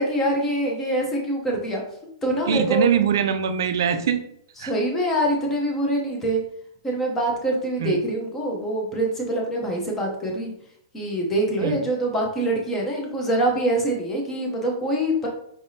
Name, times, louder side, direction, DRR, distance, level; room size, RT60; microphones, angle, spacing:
voice 1, 0.0-1.8 2.2-2.9 4.6-6.4 6.8-10.5 10.9-15.3, right 1 dB, 10° left, 0 dB, 0.7 m, -24 dB
voice 2, 2.5-4.2 4.6-4.7 7.8-8.0 11.6-11.8, right 8 dB, 55° right, 9 dB, 0.4 m, -22 dB
4.9 x 3.4 x 2.7 m, 0.71 s
hypercardioid pair, 180°, 2 cm